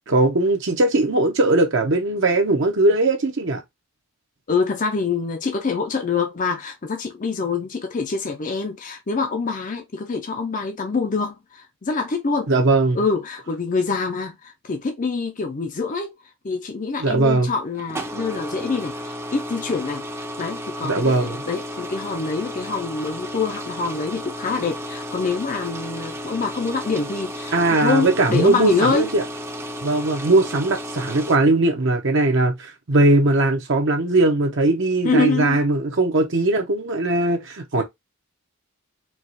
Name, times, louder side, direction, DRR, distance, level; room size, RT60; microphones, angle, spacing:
voice 1, 0.1-3.6 12.5-13.0 17.0-17.5 20.8-21.4 27.5-29.2 29.8-37.8, right 2 dB, 55° right, 0.8 m, -19 dB
voice 2, 4.5-12.5 12.9-16.1 16.4-29.1 35.0-35.6 37.8-37.9, left 4 dB, 35° left, 0.5 m, -25 dB
sound 1, 17.7-31.4, equal, 10° right, 0.5 m, -33 dB
4.6 x 2.3 x 4.0 m
head